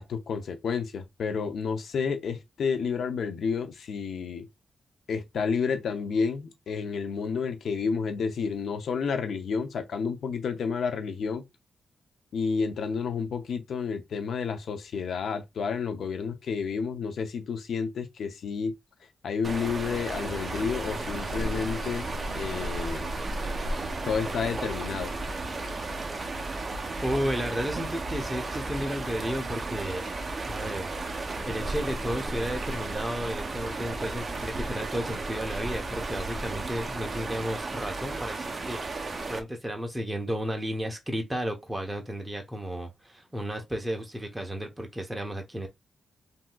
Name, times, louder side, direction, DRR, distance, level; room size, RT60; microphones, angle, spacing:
voice 1, 0.0-4.5 5.1-11.4 12.3-18.7 19.2-23.0 24.1-25.1, left 5 dB, 75° left, 0.6 m, -30 dB
sound 1, 19.4-39.4, right 3 dB, 40° right, 0.6 m, -34 dB
sound 2, 19.7-38.4, right 1 dB, 25° left, 1.5 m, -45 dB
voice 2, 27.0-30.0 30.5-30.9 31.5-45.7, equal, 10° right, 0.8 m, -33 dB
3.5 x 2.8 x 2.3 m
cardioid pair, 90°, 0 cm